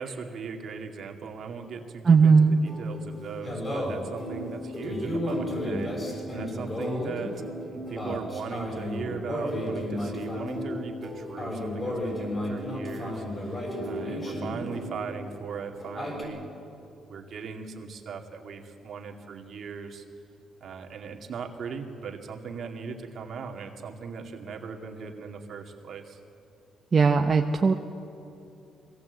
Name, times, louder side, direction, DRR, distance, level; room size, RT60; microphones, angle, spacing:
voice 1, 0.0-7.4 7.7-16.5 17.1-20.0 20.6-26.2, right 5 dB, 60° right, 2 dB, 2.4 m, -38 dB
voice 2, 2.0-2.6 26.9-27.7, right 5 dB, 35° right, 3 dB, 0.9 m, -18 dB
sound 1, 2.2-15.3 15.5-16.2, left 1 dB, 25° left, 6.8 m, -33 dB
22.5 x 18.0 x 8.1 m, 2.8 s
cardioid pair, 90°, 0 cm